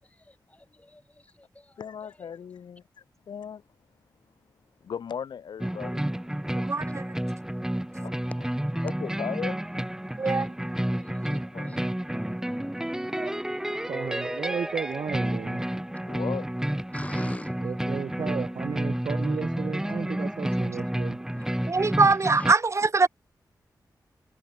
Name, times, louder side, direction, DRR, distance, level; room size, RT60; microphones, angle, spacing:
voice 1, 0.0-2.4 6.9-7.0 10.4-10.5 11.0-11.8 12.9-13.3 16.9-17.7 18.1-18.5 20.4-20.7 21.3-22.5 22.8-22.9, left 1 dB, 20° left, 7.8 m, -46 dB
voice 2, 1.8-2.8 3.3-3.6 4.8-6.0 8.0-8.1 8.8-9.6 11.3-11.8 16.1-16.5, left 7 dB, 85° left, 3.2 m, -36 dB
sound 1, 5.6-22.5, right 1 dB, 5° right, 1.6 m, -30 dB
voice 3, 6.6-7.0 10.2-10.5 13.2-13.3 21.7-23.1, right 3 dB, 40° right, 1.9 m, -22 dB
voice 4, 13.9-15.6 17.6-21.2, right 6 dB, 75° right, 1.7 m, -34 dB
cardioid pair, 65°, 7 cm